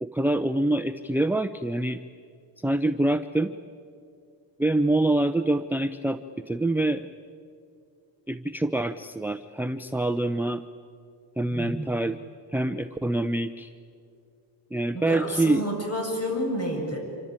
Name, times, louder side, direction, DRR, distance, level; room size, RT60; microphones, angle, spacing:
voice 1, 0.0-2.0 2.6-3.5 4.6-6.2 6.5-7.1 8.3-10.6 11.4-12.2 12.5-13.7 14.7-15.7, right 1 dB, 5° right, 9 dB, 0.6 m, -25 dB
voice 2, 11.5-11.8 14.9-17.0, equal, 35° left, 1 dB, 7.7 m, -30 dB
26.5 x 25.0 x 8.9 m, 2.4 s
cardioid pair, 105°, 43 cm